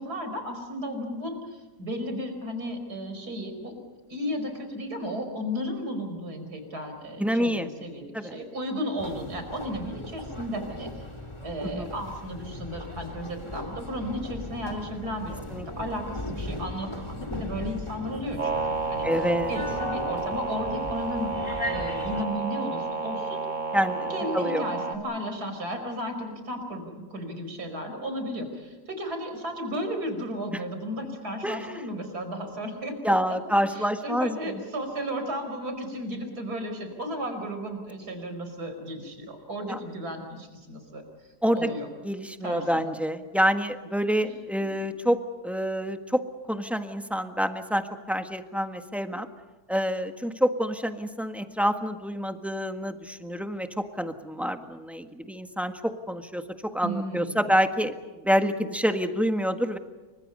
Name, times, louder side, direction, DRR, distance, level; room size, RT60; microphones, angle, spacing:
voice 1, 0.0-3.8 4.1-11.1 11.4-19.1 19.5-23.4 24.1-33.0 33.7-41.0 41.5-41.9 42.4-43.0 56.8-57.4, equal, 70° right, 6 dB, 5.5 m, -34 dB
voice 2, 7.2-7.7 8.1-8.3 11.6-11.9 15.5-15.6 19.0-19.5 23.7-24.6 31.4-31.8 33.0-34.6 39.7-39.8 41.4-41.7 42.0-45.2 45.4-46.2 46.5-49.3 49.7-59.8, equal, ahead, 7 dB, 1.4 m, -27 dB
sound 1, 9.0-22.2, left 1 dB, 15° left, 2.6 m, -38 dB
sound 2, 18.4-25.0, right 3 dB, 45° right, 2.5 m, -31 dB
29.0 x 25.0 x 5.5 m, 1.3 s
omnidirectional pair, 1.8 m